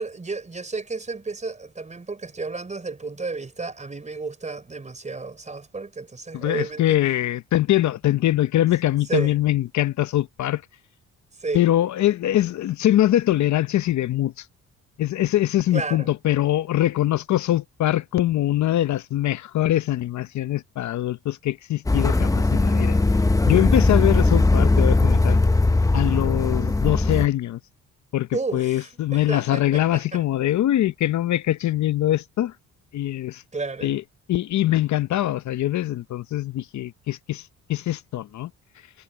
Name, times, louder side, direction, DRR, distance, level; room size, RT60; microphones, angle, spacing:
voice 1, 0.0-7.0 9.1-9.3 11.4-11.6 15.7-16.1 28.3-30.2 33.5-33.9, right 3 dB, 25° right, 5.0 m, -32 dB
voice 2, 6.3-10.6 11.5-14.4 15.0-23.0 23.5-25.4 25.9-27.6 28.1-32.5 32.9-33.4 33.8-34.0 34.3-38.5, left 13 dB, 70° left, 0.8 m, -23 dB
sound 1, 21.9-27.3, left 2 dB, 10° left, 0.8 m, -19 dB
cardioid pair, 90°, 30 cm